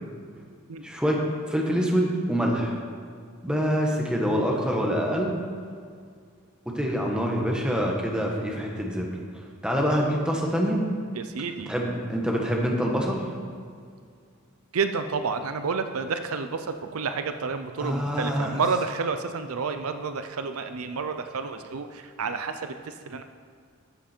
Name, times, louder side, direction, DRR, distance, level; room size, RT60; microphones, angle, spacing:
voice 1, 0.8-1.2 1.5-2.8 3.4-5.4 6.6-9.2 9.6-10.8 11.7-13.2 17.8-18.5, equal, 5° right, -1 dB, 1.4 m, -25 dB
voice 2, 11.1-11.7 14.7-23.2, right 5 dB, 75° right, 8 dB, 0.6 m, -30 dB
12.5 x 7.4 x 4.4 m, 2.2 s
head